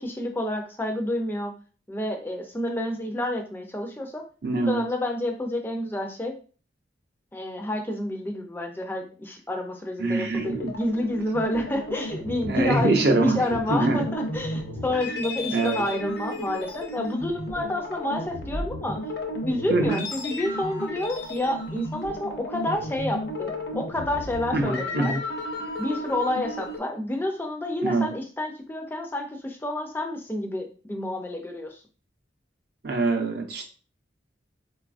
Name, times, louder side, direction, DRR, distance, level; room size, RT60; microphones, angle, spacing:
voice 1, 0.0-1.5 1.9-4.2 4.6-6.3 7.3-19.0 19.4-25.1 25.8-31.8, left 1 dB, 10° left, 3 dB, 0.4 m, -29 dB
voice 2, 4.4-4.8 10.0-10.7 12.5-14.0 15.5-15.8 19.7-20.1 24.5-25.2 27.8-28.1 32.8-33.7, right 2 dB, 55° right, 3 dB, 0.5 m, -24 dB
sound 1, 10.3-26.8, left 1 dB, 60° left, 0.6 m, -34 dB
3.8 x 2.3 x 2.4 m, 0.39 s
head